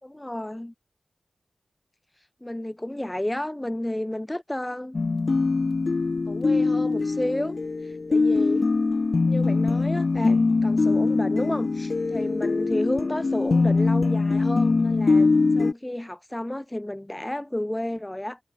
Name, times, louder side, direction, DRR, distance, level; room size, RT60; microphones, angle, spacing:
voice 1, 0.0-0.7 2.2-5.0 6.3-8.7 9.3-18.4, left 1 dB, 15° left, 5.9 m, -32 dB
sound 1, 4.9-15.7, left 3 dB, 50° left, 0.8 m, -22 dB
wide cardioid pair, 70°, 0 cm